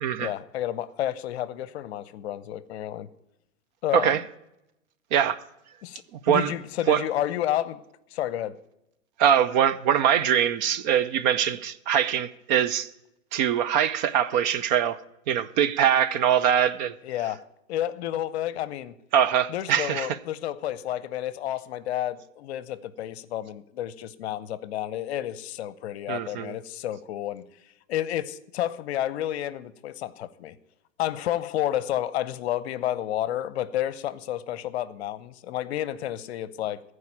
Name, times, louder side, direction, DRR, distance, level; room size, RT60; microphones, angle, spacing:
voice 1, 0.2-3.1 3.8-4.2 5.8-7.8 8.1-8.6 17.0-17.4 17.7-18.9 19.5-27.4 27.9-30.6 31.0-36.8, left 12 dB, 55° left, 0.8 m, -30 dB
voice 2, 5.1-5.4 6.3-6.5 6.9-7.0 9.2-12.9 13.3-15.0 15.3-16.9 19.1-20.1 26.1-26.6, right 9 dB, 35° right, 0.5 m, -23 dB
14.5 x 4.9 x 8.6 m
hypercardioid pair, 120°, 39 cm